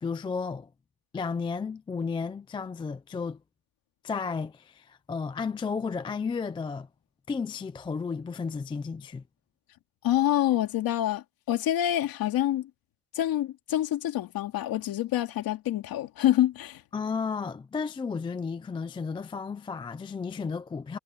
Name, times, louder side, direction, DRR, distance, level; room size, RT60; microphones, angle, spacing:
voice 1, 0.0-0.7 1.1-3.4 4.0-6.9 7.3-9.2 16.9-21.0, left 5 dB, 10° left, 0.4 m, -33 dB
voice 2, 10.0-12.7 13.1-16.8, left 13 dB, 45° left, 2.5 m, -26 dB
cardioid pair, 165°, 47 cm